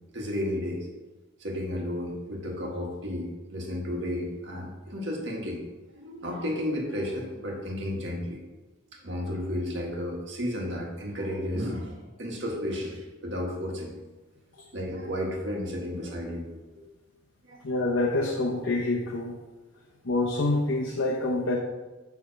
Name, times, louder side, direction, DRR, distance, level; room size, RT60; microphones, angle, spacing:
voice 1, 0.1-0.9 1.4-5.6 5.9-8.4 9.0-13.9 14.7-16.5 16.7-16.9 17.5-17.6, left 1 dB, 65° right, 0 dB, 1.7 m, -33 dB
voice 2, 17.6-19.3 20.0-21.6, left 2 dB, 80° left, -1 dB, 0.9 m, -26 dB
9.3 x 3.5 x 6.4 m, 1.2 s
head